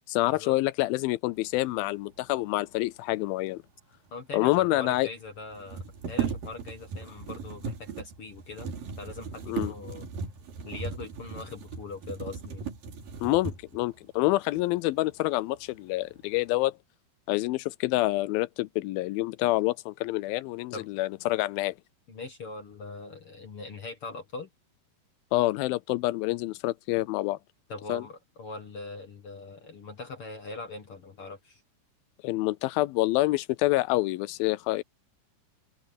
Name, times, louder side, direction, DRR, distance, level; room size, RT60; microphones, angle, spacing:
voice 1, 0.1-3.6 4.3-5.1 9.5-9.7 13.2-16.8 17.3-21.7 25.3-27.4 27.9-28.0 32.2-34.8, left 18 dB, 85° left, 2.1 m, -27 dB
voice 2, 4.1-8.7 9.0-10.1 10.6-12.7 20.7-20.9 22.1-24.5 27.7-31.6, left 3 dB, 50° left, 1.9 m, -41 dB
sound 1, 4.1-4.2 4.3-4.4 5.5-13.9 14.5-14.7 15.1-15.7 16.1-16.6, right 6 dB, 60° right, 4.9 m, -37 dB
omnidirectional pair, 4.7 m